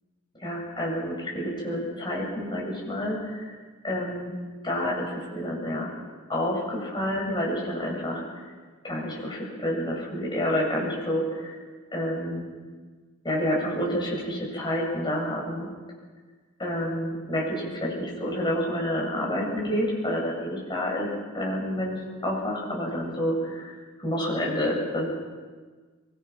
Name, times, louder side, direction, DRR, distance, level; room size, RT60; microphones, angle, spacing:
voice 1, 0.3-3.5 3.8-4.3 4.6-5.9 6.3-8.4 8.8-11.6 11.9-12.4 13.2-15.7 16.6-21.1 21.3-23.7 24.0-25.1, equal, 20° left, -3 dB, 7.7 m, -29 dB
24.5 x 23.0 x 6.0 m, 1.4 s
head